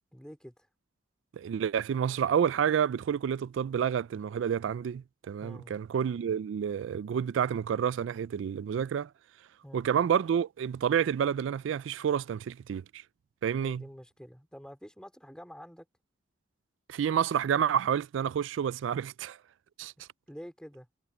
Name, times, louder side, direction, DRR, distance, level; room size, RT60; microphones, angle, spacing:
voice 1, 0.1-0.5 5.4-5.8 9.6-9.8 13.6-15.9 20.0-20.9, equal, 5° left, 4.4 m, -47 dB
voice 2, 1.3-9.1 9.7-13.0 13.4-13.8 16.9-19.4 19.8-19.9, right 8 dB, 85° right, 0.3 m, -29 dB
head